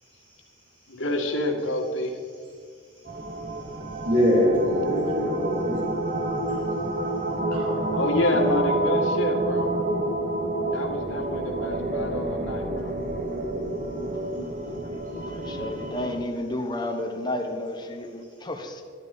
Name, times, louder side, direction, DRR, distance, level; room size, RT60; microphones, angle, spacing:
voice 1, 0.9-2.2 6.5-6.8 7.8-9.7 10.7-12.9, left 1 dB, 85° left, 1 dB, 2.0 m, -28 dB
sound 1, 3.0-16.2, right 2 dB, 40° right, 1.2 m, -28 dB
voice 2, 4.0-5.8 7.5-7.8 13.2-13.9 15.4-15.6, equal, 70° right, -5 dB, 4.5 m, -24 dB
voice 3, 15.3-18.8, left 1 dB, 20° left, 4 dB, 1.2 m, -31 dB
13.0 x 12.0 x 5.4 m, 2.1 s
head